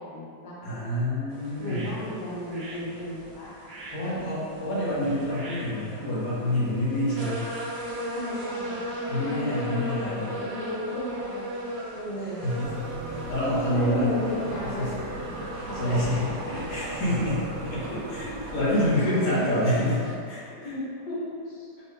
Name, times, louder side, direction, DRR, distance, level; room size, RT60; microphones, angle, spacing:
voice 1, 0.0-0.8 1.6-3.6 4.0-4.1 8.1-8.8 9.2-11.5 11.9-12.5 13.7-15.0 15.4-16.1 18.9-19.6 20.6-21.7, left 1 dB, 45° left, -6 dB, 0.7 m, -34 dB
voice 2, 0.6-1.9 3.9-7.4 9.1-10.3 12.4-14.1 14.8-15.0 15.5-20.7, left 1 dB, 70° left, -9 dB, 1.7 m, -27 dB
sound 1, 1.3-20.1, right 1 dB, 55° right, 0.4 m, -38 dB
sound 2, 12.6-19.0, right 2 dB, 80° right, 1.2 m, -38 dB
5.3 x 2.2 x 3.4 m, 2.4 s
omnidirectional pair, 1.9 m